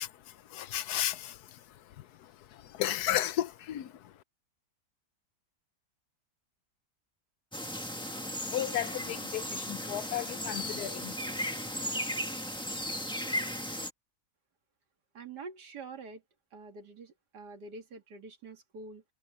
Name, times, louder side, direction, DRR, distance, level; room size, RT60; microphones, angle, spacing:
voice 1, 0.0-4.2 7.9-11.9, left 12 dB, 75° left, 1.2 m, -35 dB
sound 1, 7.5-13.9, equal, 5° left, 1.5 m, -36 dB
voice 2, 15.1-16.2 16.5-19.0, right 4 dB, 90° right, 2.6 m, -46 dB
omnidirectional pair, 1.7 m